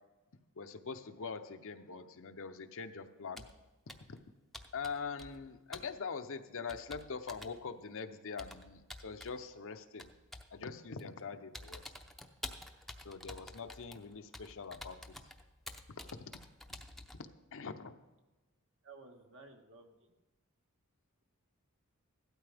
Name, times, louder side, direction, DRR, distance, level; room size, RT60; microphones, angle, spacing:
voice 1, 0.6-3.5 4.7-10.1 10.5-11.8 13.0-15.0 16.3-16.4 17.2-18.0, left 5 dB, 65° left, 8 dB, 0.7 m, -43 dB
Computer keyboard, 3.4-3.6 3.9-4.2 4.5-5.5 5.7-5.9 6.7-7.6 8.4-9.4 10.0-10.5 11.0-11.2 11.5-17.2, left 1 dB, ahead, 0.6 m, -49 dB
voice 2, 18.8-20.1, right 3 dB, 60° right, 3 dB, 1.5 m, -55 dB
16.0 x 12.5 x 3.5 m, 1.1 s
head